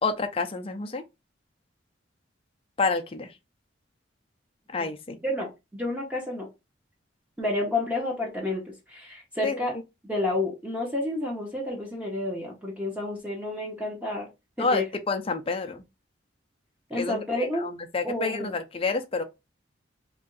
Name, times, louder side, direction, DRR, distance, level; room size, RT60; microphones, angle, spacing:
voice 1, 0.0-1.0 2.8-3.3 4.7-5.2 9.4-9.6 14.6-15.8 17.0-19.2, left 4 dB, 30° left, 0.5 m, -29 dB
voice 2, 5.2-6.5 7.4-8.6 8.9-9.8 10.0-14.3 14.6-14.8 16.9-17.7 18.0-18.5, left 2 dB, 5° right, 0.9 m, -30 dB
3.1 x 2.7 x 3.8 m
head